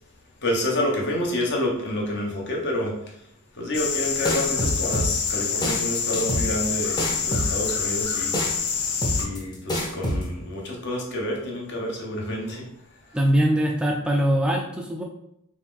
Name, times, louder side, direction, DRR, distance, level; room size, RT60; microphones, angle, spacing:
voice 1, 0.4-3.2 3.5-8.4 9.1-12.7 13.0-13.2, left 1 dB, 55° left, 0 dB, 0.9 m, -28 dB
sound 1, 3.7-9.3, left 6 dB, 85° left, 0.5 m, -27 dB
sound 2, 4.2-10.2, equal, 20° left, 0.7 m, -26 dB
voice 2, 13.1-15.0, equal, 5° right, 0 dB, 0.3 m, -22 dB
4.3 x 2.5 x 3.6 m, 0.76 s
head